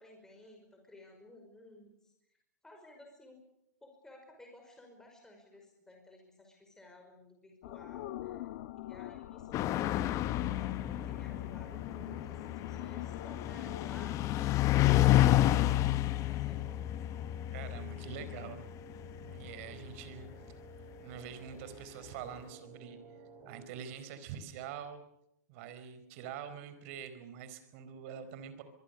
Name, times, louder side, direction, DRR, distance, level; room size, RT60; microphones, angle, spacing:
voice 1, 0.0-2.1 2.6-3.4 3.8-8.4 8.8-14.2 15.5-16.6, left 1 dB, 5° left, 2 dB, 5.4 m, -55 dB
sound 1, 7.6-14.1, left 15 dB, 55° left, 1.3 m, -45 dB
sound 2, 9.5-20.5, left 14 dB, 35° left, 1.1 m, -30 dB
sound 3, 9.8-23.7, right 2 dB, 30° right, 4.3 m, -54 dB
voice 2, 17.5-18.6 19.2-20.6 21.0-23.0 23.4-25.0 25.5-28.6, right 8 dB, 50° right, 11 dB, 4.5 m, -45 dB
23.5 x 23.0 x 6.8 m, 0.80 s
hypercardioid pair, 120°, 9 cm